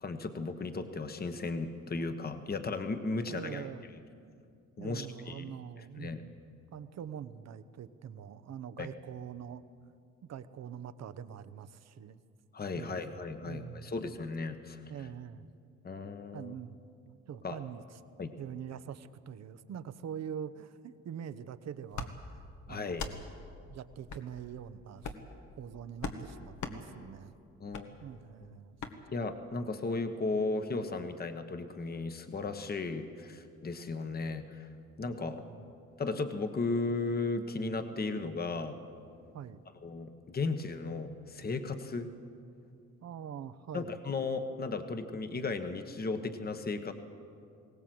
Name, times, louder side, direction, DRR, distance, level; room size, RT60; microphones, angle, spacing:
voice 1, 0.0-3.7 4.8-5.5 6.0-6.2 8.8-8.9 12.5-14.8 15.8-16.5 17.4-17.6 18.2-18.3 22.7-23.1 27.6-27.9 29.1-34.7 35.0-35.4 36.0-38.8 39.8-42.1 43.7-46.9, left 3 dB, 30° left, 8 dB, 1.3 m, -35 dB
voice 2, 3.2-3.8 4.8-6.3 6.7-9.6 10.3-12.2 12.7-13.1 13.4-14.0 14.9-15.5 16.3-18.0 18.4-20.8 21.0-22.4 22.7-23.2 23.7-25.2 25.6-27.3 28.0-28.8 35.3-35.7 39.3-39.6 43.0-44.0, right 8 dB, 60° right, 13 dB, 0.9 m, -44 dB
sound 1, 21.9-22.1 22.9-23.2 24.1-24.3 25.0-25.3 26.0-26.2 26.6-26.8 27.7-27.9 28.8-28.9, left 4 dB, 70° left, 1.6 m, -38 dB
21.0 x 17.5 x 7.8 m, 2.5 s
cardioid pair, 90°, 30 cm